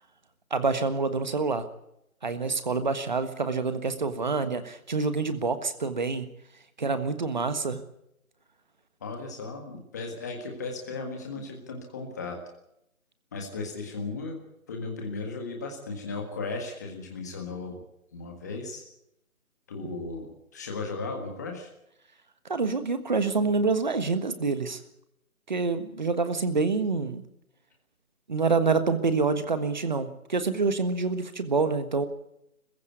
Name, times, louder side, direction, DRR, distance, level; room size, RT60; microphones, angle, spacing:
voice 1, 0.5-1.7 2.2-6.3 6.8-7.8 22.5-24.8 25.5-27.2 28.3-32.1, right 4 dB, 35° right, 11 dB, 1.5 m, -27 dB
voice 2, 9.0-12.4 13.3-14.4 14.7-17.8 18.1-18.8 19.7-21.7, left 3 dB, 10° left, 2 dB, 1.7 m, -36 dB
22.0 x 15.5 x 8.3 m, 0.82 s
figure-of-eight pair, 175°, 42 cm